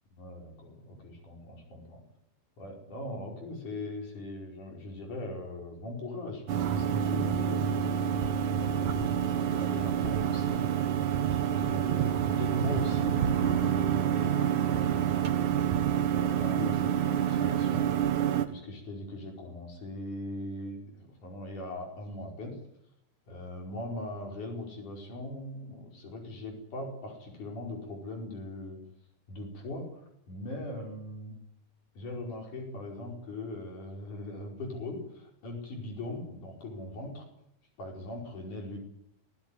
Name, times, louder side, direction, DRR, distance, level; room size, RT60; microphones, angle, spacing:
voice 1, 0.2-2.0 2.6-7.9 8.7-10.7 11.3-15.1 16.1-17.9 18.5-22.6 23.3-28.8 29.3-31.4 31.9-37.3 37.8-38.8, left 2 dB, 90° left, 1 dB, 6.5 m, -40 dB
Computer Fan, 6.5-18.5, right 9 dB, 85° right, 3.2 m, -28 dB
23.5 x 16.0 x 9.9 m, 0.77 s
omnidirectional pair, 3.4 m